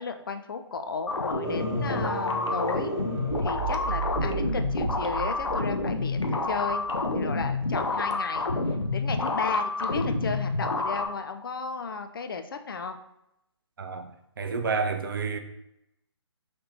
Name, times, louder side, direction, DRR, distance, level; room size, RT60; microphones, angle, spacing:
voice 1, 0.0-2.9 3.4-6.9 7.1-8.5 8.9-13.0, left 5 dB, 50° left, 0.4 m, -34 dB
sound 1, 1.1-11.1, left 3 dB, 80° left, 0.7 m, -29 dB
sound 2, 1.4-7.1, right 3 dB, 5° right, 1.1 m, -34 dB
voice 2, 13.8-14.1 14.4-15.4, right 5 dB, 50° right, 0.6 m, -29 dB
5.7 x 3.3 x 2.8 m
figure-of-eight pair, 135°, 15 cm